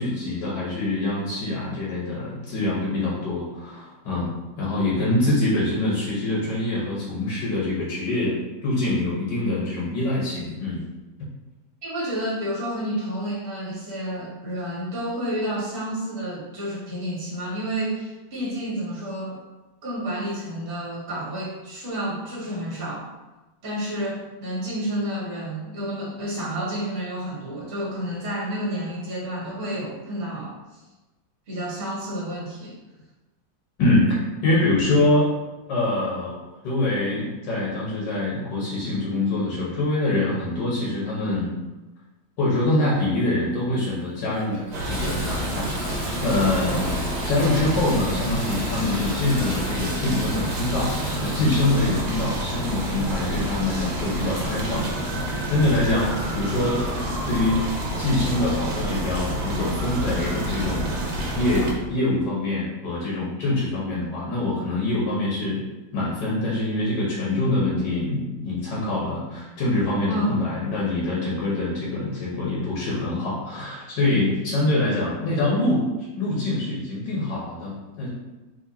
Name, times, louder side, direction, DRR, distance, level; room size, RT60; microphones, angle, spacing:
voice 1, 0.0-4.3 4.6-10.8 33.8-35.3 35.7-36.4 36.6-41.5 42.4-56.9 57.2-57.6 58.0-60.9 61.3-65.6 65.9-75.8 76.2-78.1, left 2 dB, 60° left, -6 dB, 1.7 m, -25 dB
voice 2, 11.8-19.4 19.8-23.1 23.6-30.8 31.5-32.7 70.1-70.3, right 1 dB, 40° right, -6 dB, 1.5 m, -30 dB
Water tap faucet / Bathtub (filling or washing), 43.7-43.8 44.2-56.6 57.3-57.4 57.9-58.0, equal, 15° left, 1.2 m, -38 dB
sound 1, 44.7-61.7, equal, 70° right, 1.5 m, -28 dB
5.0 x 3.5 x 2.8 m, 1.1 s
omnidirectional pair, 2.3 m